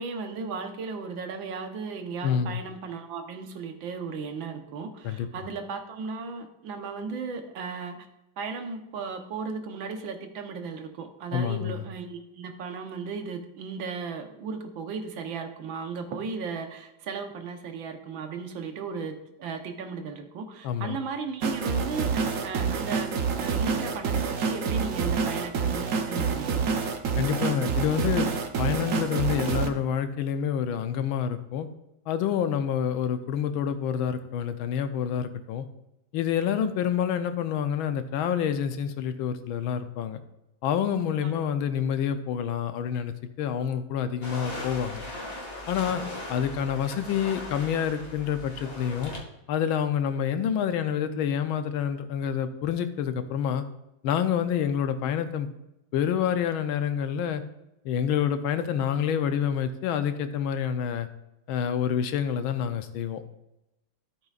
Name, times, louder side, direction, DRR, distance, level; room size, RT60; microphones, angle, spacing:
voice 1, 0.0-8.0 8.4-26.7 41.2-41.4, right 5 dB, 75° right, 5 dB, 1.7 m, -36 dB
voice 2, 2.2-2.6 5.0-5.3 11.3-11.8 20.6-21.0 27.2-28.3 28.6-31.7 32.1-35.6 36.1-40.2 40.6-45.0 45.7-46.0 46.3-49.1 49.5-53.6 54.0-55.5 55.9-57.4 57.8-61.1 61.5-63.2, left 8 dB, 90° left, 9 dB, 1.5 m, -27 dB
sound 1, 21.4-29.7, right 5 dB, 55° right, 0.9 m, -27 dB
sound 2, 44.2-49.2, left 1 dB, 30° left, 1.8 m, -39 dB
13.5 x 7.9 x 2.4 m, 0.92 s
omnidirectional pair, 2.2 m